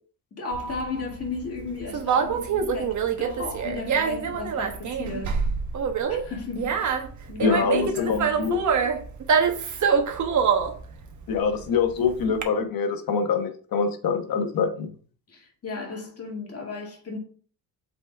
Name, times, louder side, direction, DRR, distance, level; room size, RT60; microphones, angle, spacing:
voice 1, 0.3-5.4 6.1-7.0 7.3-8.6 15.3-17.2, left 3 dB, 40° left, 2.1 m, -34 dB
Conversation, 0.5-12.4, right 6 dB, 50° right, 1.1 m, -25 dB
voice 2, 7.4-8.6 11.3-14.9, left 5 dB, 65° left, 1.3 m, -24 dB
8.2 x 4.2 x 3.5 m
cardioid pair, 135°, 37 cm